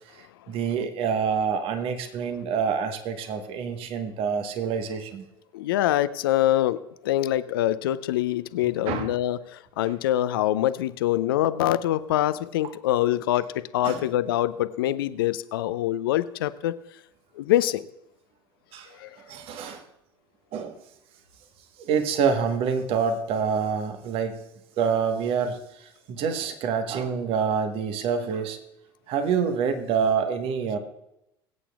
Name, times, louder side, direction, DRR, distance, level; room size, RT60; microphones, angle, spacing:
voice 1, 0.1-5.2 8.9-9.1 13.8-14.1 18.7-19.8 20.5-20.8 21.9-24.4 24.8-28.6 29.1-30.8, right 6 dB, 50° right, 7 dB, 1.4 m, -27 dB
voice 2, 5.5-13.5 13.7-16.8 17.4-17.9 18.9-19.2, left 13 dB, 70° left, 14 dB, 0.6 m, -24 dB
22.5 x 8.4 x 2.4 m, 0.83 s
figure-of-eight pair, 75°, 13 cm